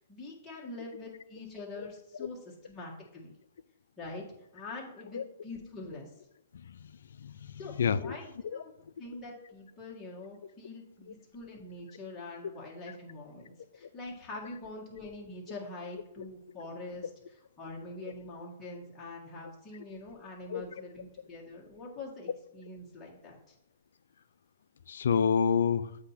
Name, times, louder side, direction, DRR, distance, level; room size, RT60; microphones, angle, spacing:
voice 1, 0.0-2.4 2.6-3.3 4.0-4.2 4.5-6.1 7.6-8.7 9.0-17.1 17.6-23.5, left 2 dB, 20° left, -4 dB, 1.9 m, -44 dB
voice 2, 7.1-8.2 8.4-8.6 20.5-20.6 24.9-26.0, left 7 dB, 75° left, 16 dB, 0.4 m, -29 dB
8.0 x 2.9 x 5.7 m, 0.80 s
hypercardioid pair, 135°, 0 cm